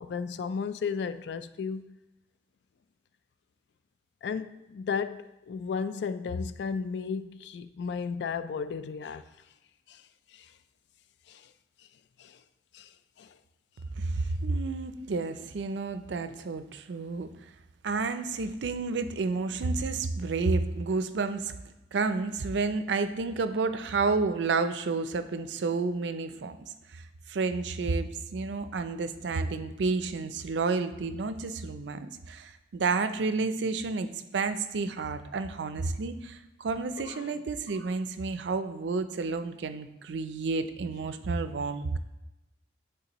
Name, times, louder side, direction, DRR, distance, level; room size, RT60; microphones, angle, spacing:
voice 1, 0.0-1.8 4.2-9.2 9.9-10.0 10.3-10.5 11.3-11.4 12.2-12.4 12.7-12.9 13.2-13.3 37.0-37.3, left 5 dB, 75° left, 0.3 m, -34 dB
voice 2, 14.0-17.3 17.8-21.5 21.9-26.6 26.9-27.0 27.3-42.0, right 4 dB, 80° right, 0.4 m, -30 dB
10.5 x 3.7 x 3.0 m
head